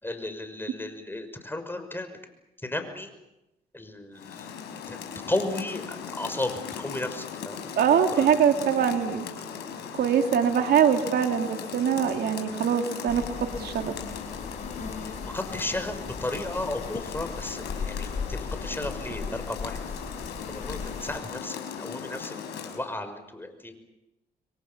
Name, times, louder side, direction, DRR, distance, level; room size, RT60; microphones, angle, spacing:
voice 1, 0.0-2.2 2.6-3.1 3.7-4.6 4.9-5.0 5.3-7.7 8.1-8.3 15.0-19.8 20.5-23.8, left 1 dB, 15° left, 8 dB, 5.9 m, -34 dB
Rain, 4.1-22.9, left 7 dB, 85° left, 5.1 m, -38 dB
voice 2, 7.8-9.2 10.0-14.0, right 8 dB, 70° right, 6 dB, 2.5 m, -23 dB
sound 1, 13.1-21.2, left 5 dB, 45° left, 4.3 m, -38 dB
28.5 x 22.5 x 7.2 m, 0.93 s
supercardioid pair, 60°, 17 cm